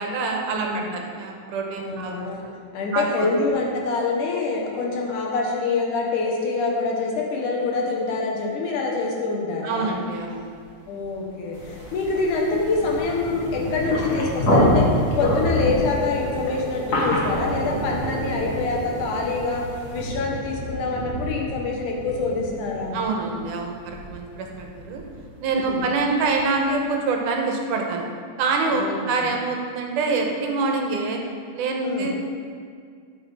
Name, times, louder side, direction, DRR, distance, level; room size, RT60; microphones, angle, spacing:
voice 1, 0.0-2.5 2.9-3.3 9.6-10.5 22.9-25.0 25.4-28.1 28.4-31.2 31.5-32.1, right 3 dB, 80° right, 1 dB, 2.4 m, -25 dB
voice 2, 0.5-0.9 1.8-2.4 2.7-10.0 10.9-14.9 15.2-19.6 19.9-23.0 25.5-25.9 28.7-29.3 31.8-32.1, left 3 dB, 75° left, -1 dB, 2.6 m, -25 dB
Thunder / Rain, 10.2-10.3 10.5-10.6 10.9-26.8, right 2 dB, 65° right, 1.5 m, -31 dB
sound 1, 11.5-20.1, left 1 dB, 40° left, 1.5 m, -27 dB
12.0 x 6.4 x 3.5 m, 2.2 s
omnidirectional pair, 3.6 m